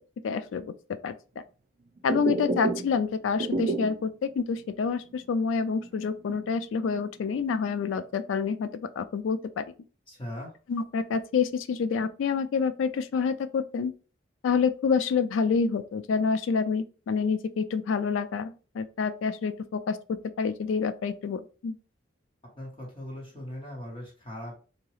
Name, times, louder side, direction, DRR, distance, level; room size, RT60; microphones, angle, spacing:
voice 1, 0.2-0.7 1.0-1.1 2.0-9.6 10.7-13.9 14.4-21.8, left 5 dB, 85° left, 0.3 m, -28 dB
sound 1, 2.0-3.0 3.3-4.1 4.5-4.6 5.0-5.1 5.6-7.0 7.4-8.0, right 3 dB, 45° right, 0.4 m, -31 dB
voice 2, 10.1-10.6 22.5-24.6, left 1 dB, 25° left, 1.0 m, -39 dB
2.8 x 2.3 x 3.1 m
head